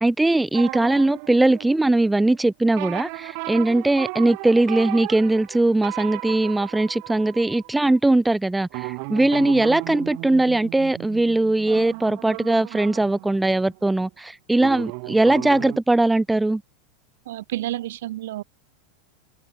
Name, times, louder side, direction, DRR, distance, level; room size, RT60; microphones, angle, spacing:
voice 1, 0.0-16.6, right 2 dB, 5° right, 0.3 m, -20 dB
sound 1, 0.5-2.4 2.8-8.0 8.7-14.2 14.6-15.8, right 40 dB or more, 55° right, 0.7 m, -35 dB
voice 2, 17.3-18.4, right 14 dB, 80° right, 1.0 m, -30 dB
supercardioid pair, 135°, 0 cm